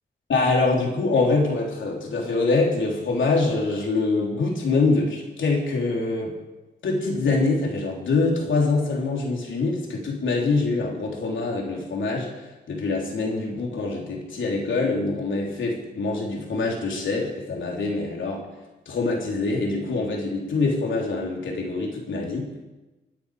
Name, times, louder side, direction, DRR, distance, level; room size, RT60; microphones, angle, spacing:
voice 1, 0.3-6.3 6.8-12.3 12.7-18.4 18.9-22.5, left 3 dB, 85° left, -1 dB, 3.7 m, -24 dB
26.5 x 9.6 x 5.1 m, 1.1 s
cardioid pair, 85°, 19 cm